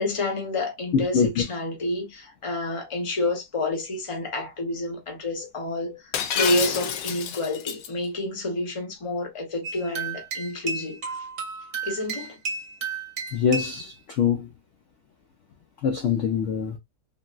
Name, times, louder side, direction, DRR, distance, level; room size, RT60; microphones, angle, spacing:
voice 1, 0.0-11.2 11.8-12.4, left 2 dB, 25° left, 0.7 m, -29 dB
voice 2, 0.9-1.3 13.3-14.5 15.8-16.8, left 7 dB, 70° left, 0.7 m, -24 dB
Shatter, 6.1-7.9, left 8 dB, 85° left, 1.3 m, -28 dB
sound 1, 9.6-13.9, right 5 dB, 50° right, 1.1 m, -33 dB
3.7 x 2.1 x 2.3 m
omnidirectional pair, 1.8 m